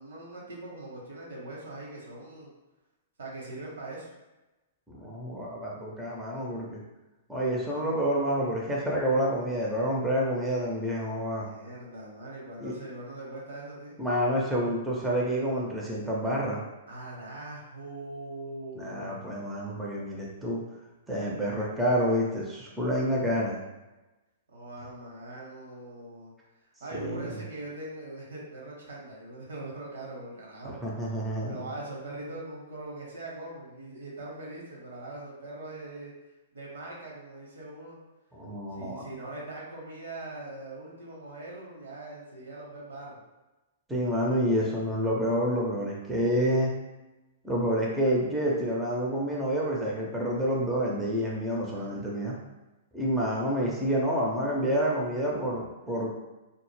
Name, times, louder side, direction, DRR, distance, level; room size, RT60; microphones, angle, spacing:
voice 1, 0.0-2.5 3.2-4.1 11.3-14.0 16.9-19.3 24.5-36.1 36.5-38.0 38.7-43.2 51.6-52.0, right 2 dB, 75° right, -3 dB, 0.9 m, -42 dB
voice 2, 4.9-6.8 7.3-11.5 12.6-12.7 14.0-16.6 18.8-20.6 21.1-23.6 26.9-27.3 30.6-31.6 38.3-39.0 43.9-46.7 47.4-52.4 52.9-56.2, equal, 5° right, -4 dB, 0.5 m, -28 dB
2.0 x 2.0 x 3.1 m, 1.1 s
hypercardioid pair, 115°, 0 cm